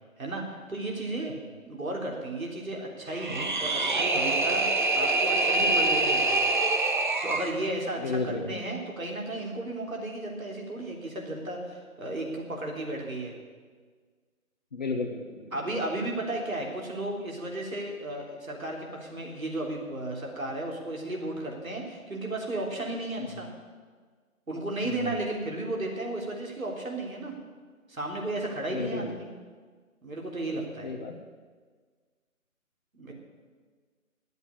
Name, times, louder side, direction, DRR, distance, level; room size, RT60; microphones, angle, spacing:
voice 1, 0.2-1.4 1.6-6.5 7.2-13.3 15.5-23.5 24.5-27.3 27.9-29.3 30.0-30.9 32.9-33.1, right 2 dB, 70° right, -1 dB, 3.6 m, -34 dB
sound 1, 3.1-7.5, right 2 dB, 35° right, 0.8 m, -25 dB
voice 2, 8.0-8.5 14.7-15.5 23.2-23.3 24.8-25.2 28.7-29.1 30.8-31.2, left 3 dB, 30° left, 1 dB, 1.0 m, -33 dB
11.0 x 8.1 x 9.9 m, 1.5 s
figure-of-eight pair, 150°, 42 cm